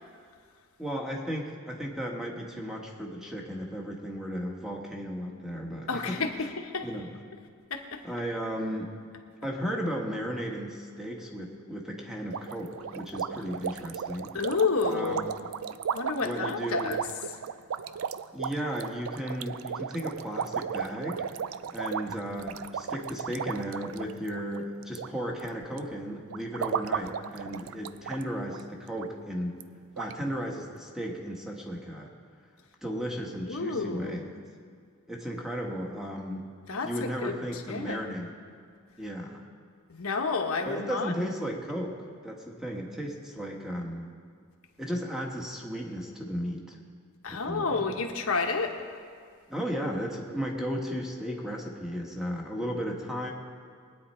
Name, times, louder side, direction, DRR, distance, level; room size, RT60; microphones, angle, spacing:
voice 1, 0.8-6.2 6.8-7.1 8.0-8.9 9.4-14.3 14.9-15.3 16.2-17.0 18.3-21.2 21.7-29.6 30.0-32.1 32.8-34.4 35.1-36.5 36.8-38.3 39.0-39.4 40.7-44.1 44.8-46.8 47.3-47.9 49.5-53.3, equal, ahead, 0 dB, 1.5 m, -35 dB
voice 2, 5.9-6.9 7.7-8.0 14.3-15.3 15.9-17.2 33.4-34.3 36.7-38.0 39.9-41.1 47.2-48.8, left 4 dB, 85° left, 4 dB, 1.2 m, -30 dB
sound 1, 12.3-25.1 25.4-25.8 26.3-28.2 28.5-28.6 29.0-29.1 29.6-29.7 30.0-30.1, right 7 dB, 80° right, 0.4 m, -35 dB
20.5 x 9.5 x 4.4 m, 2.1 s
head